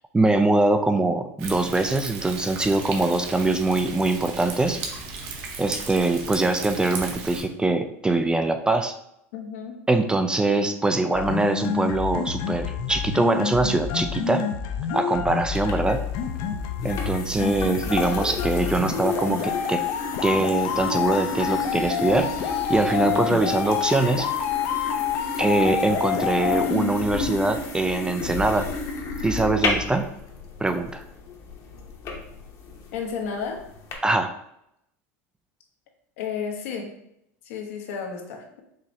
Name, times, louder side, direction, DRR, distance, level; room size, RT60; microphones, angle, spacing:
voice 1, 0.1-4.8 5.6-8.9 9.9-14.5 14.9-16.0 16.8-19.8 20.2-22.3 22.7-24.3 25.4-28.7 29.2-30.1 30.6-31.0 34.0-34.3, right 2 dB, 10° right, 7 dB, 0.3 m, -23 dB
Thunder, 1.4-7.4, right 4 dB, 65° right, 0.9 m, -36 dB
voice 2, 9.3-9.8 32.9-33.6 36.2-36.9 37.4-38.6, left 6 dB, 80° left, 2 dB, 1.0 m, -32 dB
sound 1, 11.1-27.2, left 8 dB, 60° left, 0.6 m, -28 dB
sound 2, 15.5-33.9, left 3 dB, 45° left, 1.0 m, -33 dB
4.9 x 3.0 x 2.7 m, 0.78 s
supercardioid pair, 105°, 8 cm